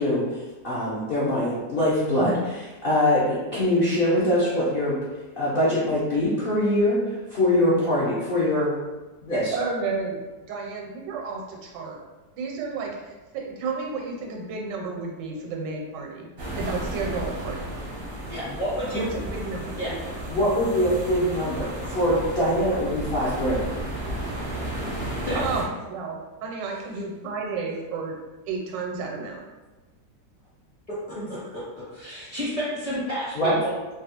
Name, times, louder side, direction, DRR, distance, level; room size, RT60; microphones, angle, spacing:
voice 1, 0.0-2.3 2.8-5.0 5.4-8.7 9.2-9.5 20.3-23.7 31.2-31.3 33.4-33.5, left 1 dB, 70° left, -8 dB, 0.5 m, -23 dB
voice 2, 2.1-2.4 9.5-12.0 12.3-16.3 16.5-17.8 18.9-20.0 25.3-25.6 25.9-28.2 28.5-29.4, right 4 dB, 85° right, 0 dB, 1.3 m, -32 dB
sound 1, 16.4-25.6, right 1 dB, 55° right, 0.6 m, -33 dB
voice 3, 18.3-19.0 19.8-19.9 25.3-25.4 30.9-31.4 31.9-33.8, equal, 30° left, -10 dB, 0.7 m, -30 dB
2.9 x 2.3 x 2.8 m, 1.2 s
omnidirectional pair, 1.9 m